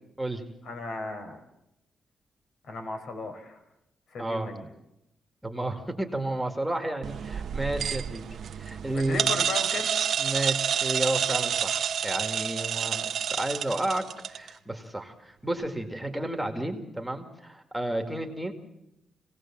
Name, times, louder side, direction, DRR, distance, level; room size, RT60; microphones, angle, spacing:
voice 1, 0.6-1.4 2.7-3.6 4.1-4.6 8.9-9.9, left 3 dB, 70° left, 6 dB, 4.6 m, -35 dB
voice 2, 4.2-4.5 5.4-9.4 10.2-13.1 13.4-18.5, right 1 dB, 5° right, 4 dB, 2.2 m, -32 dB
sound 1, 7.0-14.5, right 8 dB, 65° right, 0.9 m, -29 dB
28.0 x 18.0 x 7.5 m, 0.89 s
cardioid pair, 125°, 0 cm